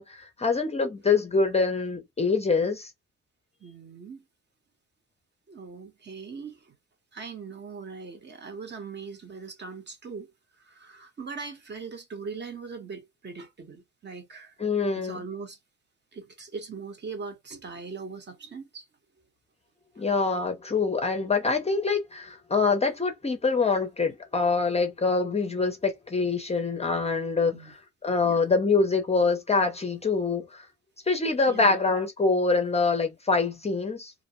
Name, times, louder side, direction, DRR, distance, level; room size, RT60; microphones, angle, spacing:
voice 1, 0.0-2.9 14.6-15.2 20.0-30.7 31.1-34.1, left 4 dB, 20° left, 0.6 m, -25 dB
voice 2, 3.6-4.2 5.5-6.6 7.1-10.3 10.7-14.5 15.0-15.6 16.1-18.8 27.5-27.7 28.2-28.4 31.5-31.8, right 5 dB, 35° right, 0.9 m, -40 dB
2.5 x 2.0 x 2.9 m
cardioid pair, 90°, 30 cm